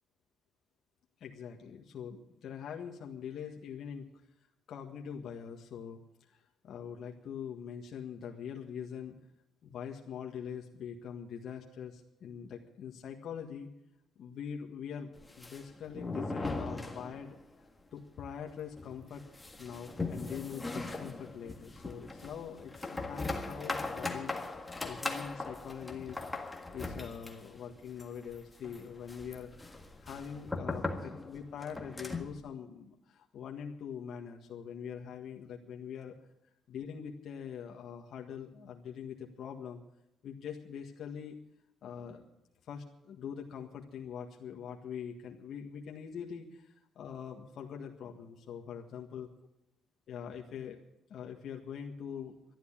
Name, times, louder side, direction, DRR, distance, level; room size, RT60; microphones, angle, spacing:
voice 1, 1.2-4.1 4.7-6.0 6.3-9.2 9.6-13.7 14.1-17.3 17.9-19.2 19.6-26.5 26.7-29.6 30.0-36.1 36.7-39.8 40.2-41.4 41.8-42.2 42.6-49.3 50.1-50.8 51.1-52.3, left 7 dB, 60° left, 1 dB, 1.7 m, -43 dB
sound 1, 15.2-17.5 17.8-17.9 18.2-18.3 18.8-32.4, left 3 dB, 10° left, 1.7 m, -40 dB
12.5 x 11.0 x 8.6 m, 0.83 s
cardioid pair, 125°, 0 cm